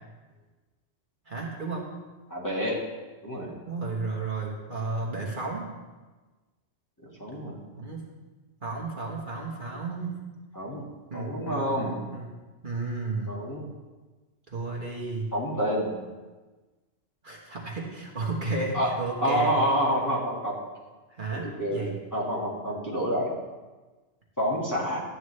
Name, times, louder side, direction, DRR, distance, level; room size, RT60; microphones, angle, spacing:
voice 1, 1.3-1.9 3.7-5.6 7.7-8.1 8.6-10.2 11.1-12.3 12.6-13.4 14.5-15.3 17.2-19.6 21.1-22.0, right 3 dB, 45° right, -2 dB, 1.5 m, -33 dB
voice 2, 2.3-2.8 3.2-3.5 7.2-7.6 10.5-10.8 11.1-12.0 13.3-13.7 15.3-15.9 18.7-18.9 19.2-20.5 21.3-23.3 24.4-25.0, equal, 15° left, -6 dB, 1.9 m, -28 dB
13.0 x 8.9 x 3.2 m, 1.3 s
omnidirectional pair, 1.2 m